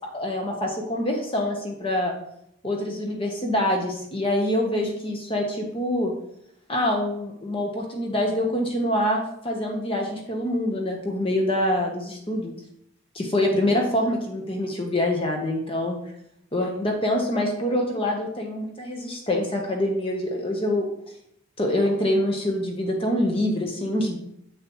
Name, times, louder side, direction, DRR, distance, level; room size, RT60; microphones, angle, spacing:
voice 1, 0.1-2.2 2.6-6.1 6.7-12.5 13.1-16.0 16.5-20.8 21.6-24.2, left 1 dB, 25° left, 1 dB, 1.0 m, -25 dB
7.6 x 6.8 x 3.0 m, 0.72 s
head